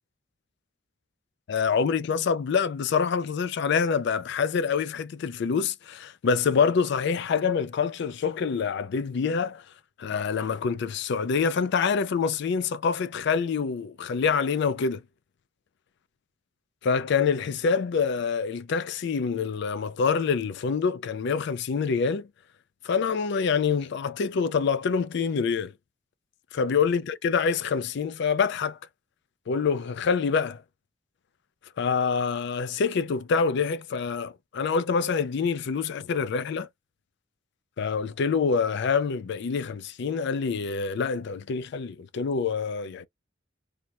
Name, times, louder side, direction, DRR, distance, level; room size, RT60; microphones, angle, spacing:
voice 1, 1.5-9.6 10.0-15.0 16.8-22.3 22.8-25.7 26.6-28.8 29.5-30.6 31.8-36.7 37.8-43.1, left 5 dB, 65° left, 0.4 m, -26 dB
3.5 x 2.0 x 2.8 m
head